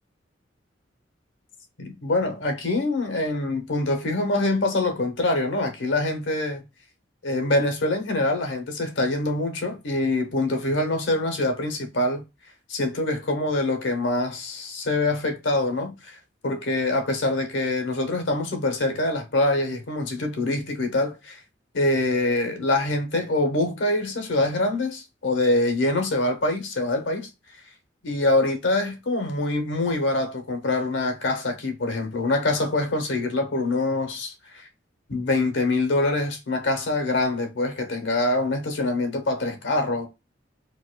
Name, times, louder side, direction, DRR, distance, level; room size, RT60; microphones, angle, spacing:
voice 1, 1.8-6.6 7.2-12.2 12.7-16.2 16.4-21.4 21.7-27.3 28.0-34.7 35.1-40.1, left 2 dB, 80° left, 0.8 m, -25 dB
4.5 x 2.2 x 2.2 m
head